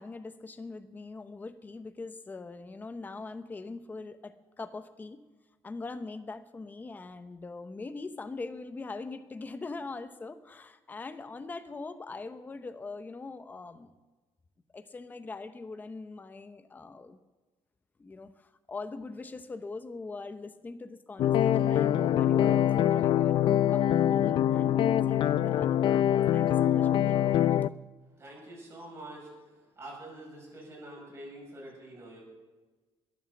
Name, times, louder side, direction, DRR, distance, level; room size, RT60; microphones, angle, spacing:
voice 1, 0.0-5.2 5.6-13.9 14.7-17.2 18.0-23.4 23.7-27.5, left 3 dB, 15° left, 10 dB, 0.8 m, -42 dB
sound 1, 21.2-27.7, left 11 dB, 50° left, 0.4 m, -24 dB
voice 2, 28.2-32.2, right 1 dB, 25° right, -3 dB, 7.2 m, -46 dB
21.0 x 9.5 x 7.2 m, 1.3 s
cardioid pair, 150°, 11 cm